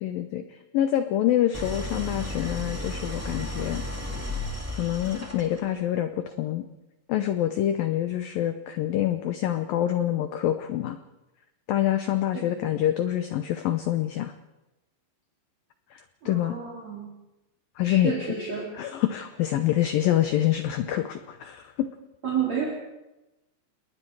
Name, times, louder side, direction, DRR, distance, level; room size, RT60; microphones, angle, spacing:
voice 1, 0.0-3.8 4.7-6.6 7.1-11.0 11.7-14.3 15.9-16.0 16.3-16.5 17.8-18.1 18.8-21.9, left 12 dB, 85° left, 8 dB, 2.0 m, -26 dB
Idling, 1.5-5.8, left 1 dB, 15° right, 0.4 m, -34 dB
voice 2, 16.2-17.1 17.8-18.7 22.2-22.7, right 7 dB, 40° right, -3 dB, 4.6 m, -30 dB
29.5 x 20.0 x 4.8 m, 1.0 s
omnidirectional pair, 5.3 m